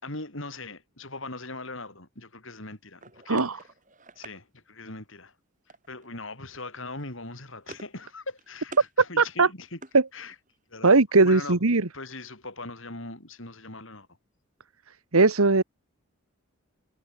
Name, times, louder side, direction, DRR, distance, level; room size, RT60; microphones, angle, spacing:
voice 1, 0.0-3.7 4.2-5.3 5.9-9.8 10.1-10.3 10.7-14.1, left 2 dB, 65° left, 5.2 m, -40 dB
sound 1, 3.0-4.4 5.7-6.1 6.4-6.6 7.0-8.0 8.3-8.9 9.3-10.6, right 2 dB, 35° right, 5.7 m, -47 dB
voice 2, 9.2-9.5 9.9-10.0 10.8-11.9 15.1-15.6, right 3 dB, 90° right, 1.4 m, -19 dB
head